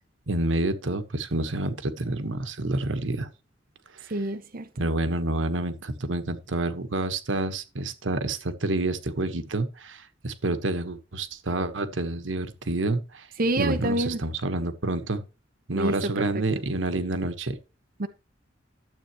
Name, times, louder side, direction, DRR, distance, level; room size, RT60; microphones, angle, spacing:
voice 1, 0.3-3.3 4.8-13.3 13.6-15.2 15.7-17.5, right 2 dB, 85° right, 1.4 m, -28 dB
voice 2, 4.1-4.7 13.4-14.2 15.7-15.9 18.0-18.1, right 1 dB, 50° right, 1.0 m, -26 dB
12.5 x 7.8 x 3.1 m
head